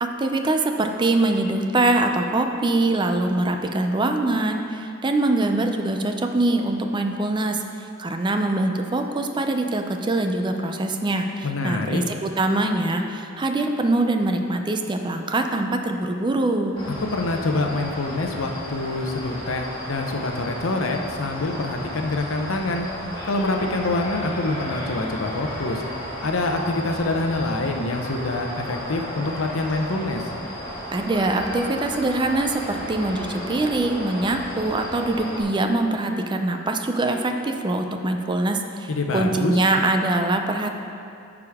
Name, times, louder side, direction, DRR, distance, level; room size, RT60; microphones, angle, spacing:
voice 1, 0.0-16.8 30.9-40.7, right 2 dB, 25° right, 5 dB, 0.5 m, -23 dB
voice 2, 11.4-12.0 17.0-22.9 23.2-25.8 26.2-30.3 38.9-39.6, left 2 dB, 85° left, 4 dB, 0.7 m, -26 dB
sound 1, 16.8-35.4, equal, 25° left, 2.0 m, -34 dB
13.5 x 4.9 x 3.6 m, 2.6 s
head